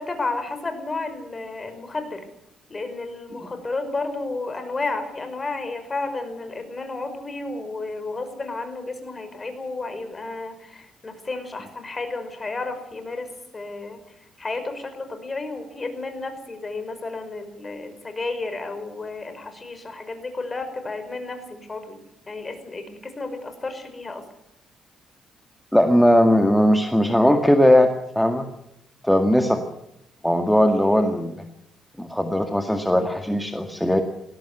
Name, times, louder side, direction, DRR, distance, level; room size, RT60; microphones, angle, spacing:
voice 1, 0.0-2.2 2.7-13.3 13.5-14.0 14.4-22.0 22.3-24.2, left 3 dB, 25° left, 8 dB, 5.4 m, -32 dB
voice 2, 25.7-28.4 29.0-29.6 30.2-31.4 32.0-34.0, equal, 5° left, 5 dB, 1.9 m, -19 dB
20.0 x 17.0 x 8.1 m, 0.80 s
cardioid pair, 90°, 0 cm